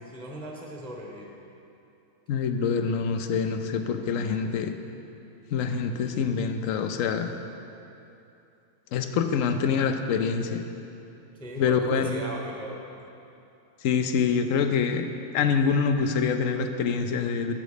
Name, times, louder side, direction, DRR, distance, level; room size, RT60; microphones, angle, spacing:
voice 1, 0.1-1.3 6.0-6.1 11.4-12.8, equal, 5° left, -1 dB, 0.7 m, -38 dB
voice 2, 2.3-4.7 5.5-7.3 8.9-10.6 11.6-12.1 13.8-15.1 15.3-17.5, left 6 dB, 70° left, 7 dB, 0.8 m, -25 dB
9.0 x 7.9 x 5.0 m, 2.8 s
omnidirectional pair, 1.6 m